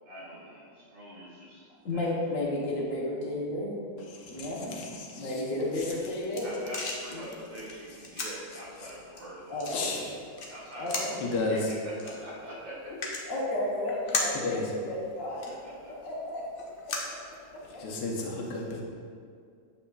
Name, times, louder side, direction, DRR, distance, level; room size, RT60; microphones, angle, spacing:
voice 1, 0.1-2.1 6.4-9.7 10.5-13.0 15.2-16.0, right 1 dB, 80° right, -7 dB, 2.4 m, -44 dB
voice 2, 1.8-3.8 4.3-4.9 5.2-6.5 7.1-7.3 9.5-10.1 10.8-11.2 12.9-13.0 13.3-15.4 16.0-16.9 17.5-17.9, left 1 dB, 50° left, -5 dB, 1.2 m, -33 dB
voice 3, 4.2-5.3 9.7-10.1 11.2-11.6 14.4-14.6 17.7-18.8, left 3 dB, 70° left, -1 dB, 1.4 m, -33 dB
sound 1, 5.8-17.9, left 2 dB, 90° left, 0.4 m, -39 dB
7.6 x 5.7 x 2.3 m, 2.2 s
omnidirectional pair, 2.0 m